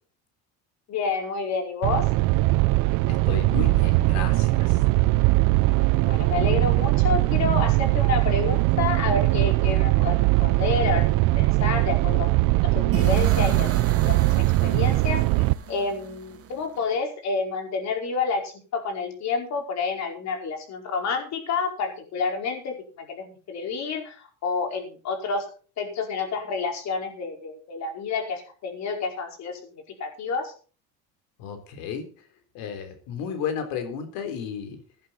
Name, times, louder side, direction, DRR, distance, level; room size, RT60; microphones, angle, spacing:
voice 1, 0.9-2.0 6.0-12.3 12.6-13.7 14.0-14.3 14.6-15.2 15.7-25.4 25.8-30.5, left 4 dB, 50° left, 3 dB, 5.1 m, -29 dB
sound 1, 1.8-15.5, right 21 dB, 70° right, 0.7 m, -21 dB
voice 2, 3.1-4.8 31.4-32.1 32.5-34.8, left 7 dB, 80° left, 7 dB, 3.8 m, -33 dB
sound 2, 12.9-16.8, right 8 dB, 45° right, 2.3 m, -34 dB
16.0 x 11.0 x 4.3 m, 0.38 s
cardioid pair, 130°, 34 cm